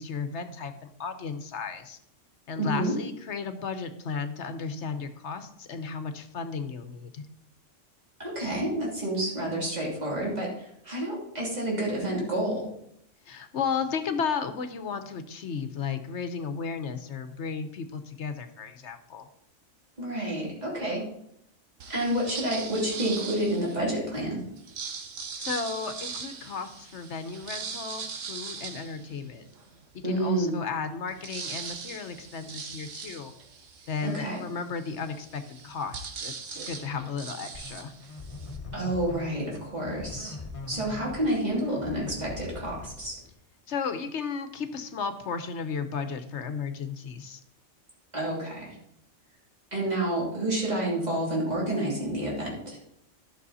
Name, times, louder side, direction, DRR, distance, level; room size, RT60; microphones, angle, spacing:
voice 1, 0.0-2.0 2.5-7.2 13.3-19.3 25.4-29.4 30.0-33.3 33.9-37.9 43.7-47.4, left 5 dB, 65° left, 9 dB, 1.1 m, -34 dB
voice 2, 2.6-2.9 8.2-12.7 20.0-21.0 21.9-24.4 30.0-30.6 34.0-34.4 38.7-40.4 40.7-43.2 48.1-48.7 49.7-52.8, right 1 dB, 35° right, -4 dB, 3.0 m, -29 dB
sound 1, 21.8-24.0 24.5-29.7 30.2-30.3 30.6-38.6, right 5 dB, 80° right, 1.4 m, -40 dB
sound 2, 37.5-43.4, left 3 dB, 30° left, 1.1 m, -41 dB
11.5 x 6.3 x 4.1 m, 0.75 s
omnidirectional pair, 1.3 m